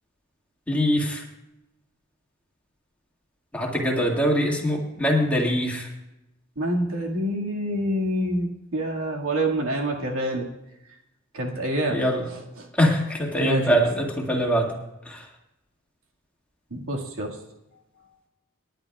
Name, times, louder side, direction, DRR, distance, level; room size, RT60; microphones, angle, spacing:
voice 1, 0.7-1.2 3.5-5.9 11.9-12.2 12.7-14.7 15.1-15.2, equal, 5° left, -1 dB, 2.0 m, -23 dB
voice 2, 6.6-10.4 11.3-12.0 13.4-13.8 16.7-17.3, right 1 dB, 80° right, -1 dB, 2.0 m, -26 dB
28.0 x 10.5 x 2.4 m, 0.93 s
head